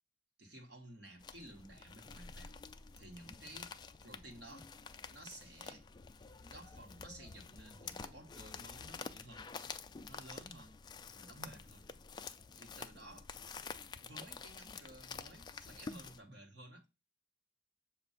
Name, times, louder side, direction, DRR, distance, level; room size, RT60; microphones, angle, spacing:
voice 1, 0.4-2.5 3.0-3.7 4.0-4.7 5.1-5.9 6.4-9.5 10.0-10.8 11.1-11.9 12.6-13.3 14.0-16.9, right 1 dB, 60° right, 1.3 m, -54 dB
sound 1, 1.2-16.2, left 5 dB, 20° left, 0.3 m, -49 dB
7.3 x 2.5 x 5.5 m
head